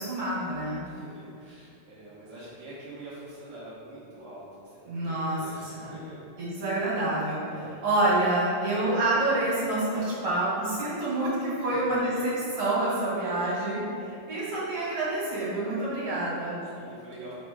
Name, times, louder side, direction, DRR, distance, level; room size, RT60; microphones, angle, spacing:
voice 1, 0.0-0.8 4.9-6.0 6.4-16.6, right 2 dB, 50° right, -8 dB, 2.2 m, -28 dB
voice 2, 0.8-6.2 7.5-7.8 11.6-12.2 16.7-17.3, right 1 dB, 65° right, -9 dB, 1.4 m, -46 dB
4.8 x 4.2 x 4.7 m, 2.6 s
omnidirectional pair, 3.7 m